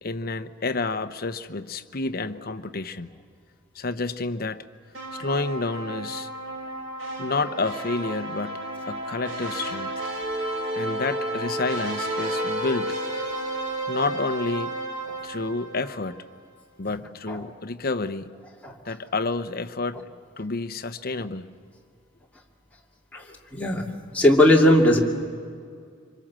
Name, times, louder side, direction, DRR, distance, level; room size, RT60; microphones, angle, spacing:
voice 1, 0.0-3.1 3.7-4.6 5.1-6.3 7.2-10.1 10.7-13.0 13.9-14.8 15.2-16.2 16.8-18.3 18.8-20.0 20.4-21.5, left 3 dB, 50° left, 9 dB, 0.9 m, -29 dB
sound 1, 4.9-16.2, right 1 dB, 75° right, 3.6 m, -32 dB
voice 2, 23.5-23.8 24.1-25.0, left 1 dB, 5° left, -3 dB, 2.6 m, -18 dB
26.0 x 24.0 x 7.5 m, 2.2 s
head